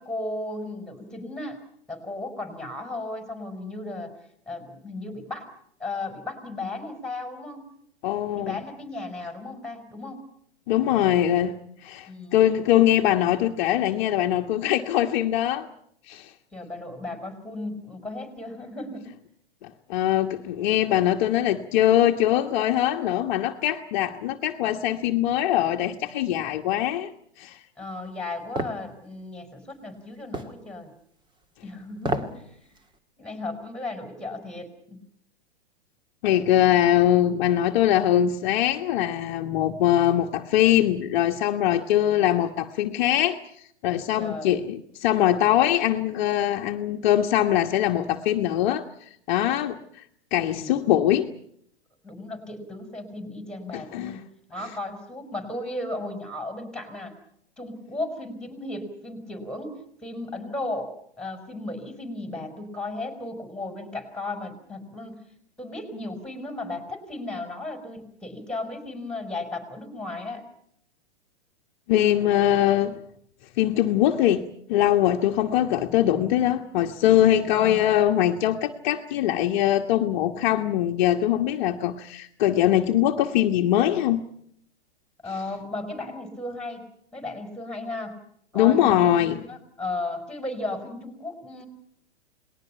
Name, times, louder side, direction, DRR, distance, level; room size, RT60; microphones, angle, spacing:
voice 1, 0.0-1.6 1.9-4.1 4.5-5.5 5.8-7.6 8.3-10.2 12.1-12.4 16.5-19.1 27.8-30.9 31.6-32.6 33.2-35.0 41.8-42.1 44.2-44.6 50.4-50.8 52.0-54.2 54.5-57.1 57.6-65.2 65.6-70.4 77.5-78.0 85.2-86.9 87.1-88.2 88.5-91.7, left 2 dB, ahead, 7 dB, 4.9 m, -35 dB
voice 2, 8.0-8.6 10.7-15.7 16.1-16.3 19.6-27.1 27.4-27.6 36.2-48.8 49.3-50.0 50.3-51.3 53.7-54.2 71.9-73.0 73.6-84.2 88.5-89.4, left 12 dB, 45° left, 4 dB, 1.4 m, -22 dB
sound 1, 28.6-28.8 30.3-30.6 32.0-32.4 32.8-32.9, right 1 dB, 15° right, 1.8 m, -28 dB
29.0 x 20.0 x 5.7 m, 0.70 s
figure-of-eight pair, 110°, 34 cm